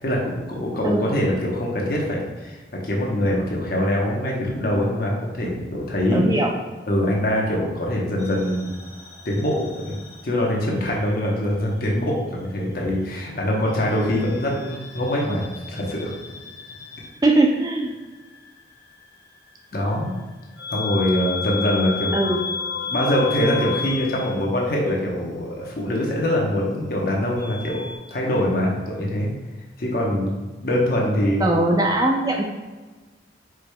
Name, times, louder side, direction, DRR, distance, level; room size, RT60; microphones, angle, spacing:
voice 1, 0.0-6.2 6.9-8.7 9.2-10.0 10.2-16.1 19.7-20.1 20.7-22.2 22.9-27.8 28.1-29.3 29.8-31.4, left 1 dB, 55° left, -2 dB, 1.0 m, -23 dB
voice 2, 6.1-6.5 17.2-17.9 22.1-22.4 31.4-32.4, right 2 dB, 20° right, 1 dB, 0.4 m, -20 dB
sound 1, 8.2-11.0 11.3-12.5 13.7-28.0, left 5 dB, 75° left, 1.2 m, -35 dB
4.8 x 4.8 x 2.3 m, 1.3 s
head